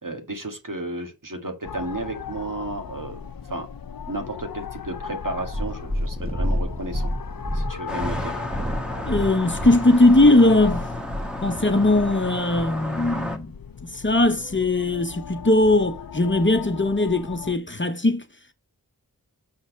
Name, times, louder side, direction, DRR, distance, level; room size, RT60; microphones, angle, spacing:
voice 1, 0.0-3.7 4.1-7.1 7.5-8.4, right 2 dB, 60° right, 1.8 m, -33 dB
sound 1, 1.6-17.6, left 7 dB, 70° left, 0.5 m, -38 dB
Purr, 5.4-11.7 12.5-12.6, equal, 25° right, 1.1 m, -29 dB
sound 2, 7.9-13.4, left 1 dB, ahead, 1.5 m, -33 dB
voice 2, 9.0-10.9 11.4-13.5 13.9-18.2, left 2 dB, 30° left, 0.8 m, -19 dB
6.1 x 4.2 x 6.1 m
wide cardioid pair, 40°, 37 cm